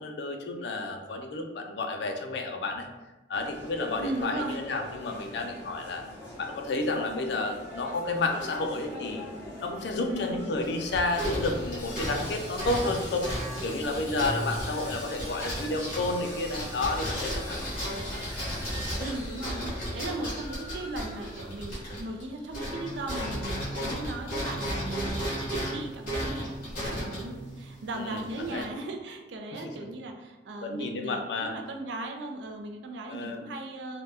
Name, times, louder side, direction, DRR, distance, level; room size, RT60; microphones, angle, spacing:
voice 1, 0.0-2.9 3.3-6.1 6.4-9.3 9.6-13.3 13.6-17.6 27.9-28.7 29.5-29.7 30.6-31.5 33.1-33.4, left 2 dB, 70° left, 4 dB, 0.4 m, -31 dB
sound 1, 3.3-18.9, left 1 dB, 20° left, 1.3 m, -44 dB
voice 2, 4.0-4.6 10.1-10.4 19.0-34.0, right 2 dB, 80° right, 4 dB, 0.4 m, -37 dB
sound 2, 10.6-22.3 22.5-28.6, equal, 55° left, 1.5 m, -34 dB
Sawing, 11.0-25.3 25.6-25.7 26.2-26.3, left 1 dB, 35° left, 1.5 m, -46 dB
3.3 x 2.1 x 2.8 m, 1.1 s
head